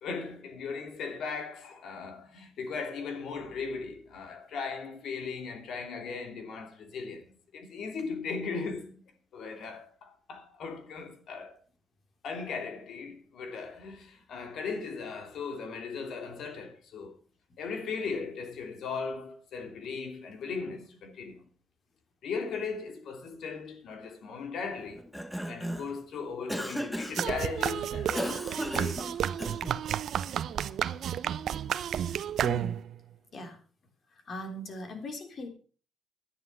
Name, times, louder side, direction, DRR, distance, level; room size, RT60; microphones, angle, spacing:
voice 1, 0.0-7.3 7.5-8.9 9.3-11.6 12.2-17.1 17.6-21.4 22.2-25.1 25.4-29.1, left 5 dB, 70° left, 2.7 m, -38 dB
Cough, 25.0-26.0 26.5-27.3 28.1-29.8, equal, ahead, 1.2 m, -35 dB
sound 1, 27.1-33.0, right 9 dB, 70° right, 0.7 m, -31 dB
voice 2, 31.9-32.8 33.3-33.6 34.1-35.5, left 1 dB, 50° left, 3.5 m, -40 dB
11.5 x 10.0 x 5.6 m
cardioid pair, 90°, 0 cm